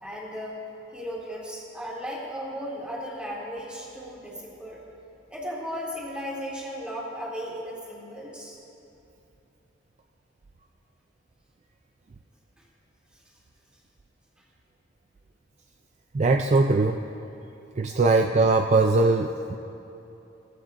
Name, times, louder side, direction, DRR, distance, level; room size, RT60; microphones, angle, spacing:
voice 1, 0.0-0.6 0.9-4.8 5.3-8.6 12.6-12.7 13.1-13.2 17.9-18.0, equal, 5° right, -5 dB, 2.3 m, -36 dB
voice 2, 16.1-17.0 17.8-19.5, right 3 dB, 35° right, 4 dB, 0.4 m, -21 dB
17.5 x 14.5 x 2.5 m, 2.9 s
head